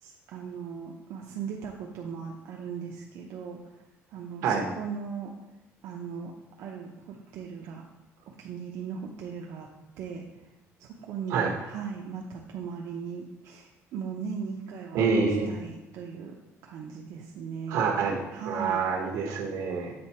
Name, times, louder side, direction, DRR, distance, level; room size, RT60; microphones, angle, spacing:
voice 1, 0.0-3.6 4.1-5.3 5.8-6.3 6.6-7.8 8.3-9.7 10.0-10.2 10.8-15.1 15.5-16.3 16.6-17.9 18.3-18.8, right 6 dB, 65° right, -1 dB, 0.7 m, -38 dB
voice 2, 14.9-15.5 17.7-19.9, right 5 dB, 85° right, 1 dB, 1.2 m, -27 dB
7.8 x 3.6 x 4.3 m, 0.97 s
cardioid pair, 175°, 6 cm